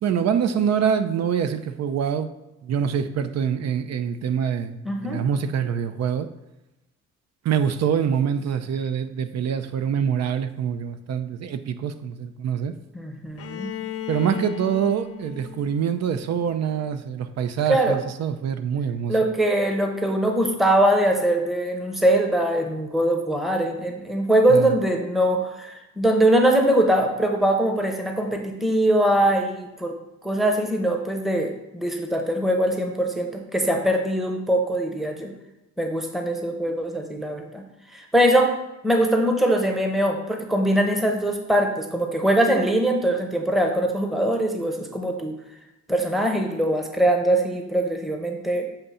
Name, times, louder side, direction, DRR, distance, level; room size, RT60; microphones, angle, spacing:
voice 1, 0.0-2.3 2.6-6.3 7.4-12.7 14.1-19.1 24.5-24.7, right 8 dB, 60° right, 10 dB, 0.6 m, -25 dB
voice 2, 4.8-5.2 12.9-13.7 17.7-18.0 19.1-29.9 30.2-35.3 35.8-37.6 37.9-38.5 38.8-45.3 45.9-48.7, right 1 dB, ahead, 3 dB, 0.8 m, -22 dB
Bowed string instrument, 13.4-17.2, left 10 dB, 55° left, 0.7 m, -37 dB
7.2 x 2.7 x 5.5 m, 0.96 s
cardioid pair, 90°, 30 cm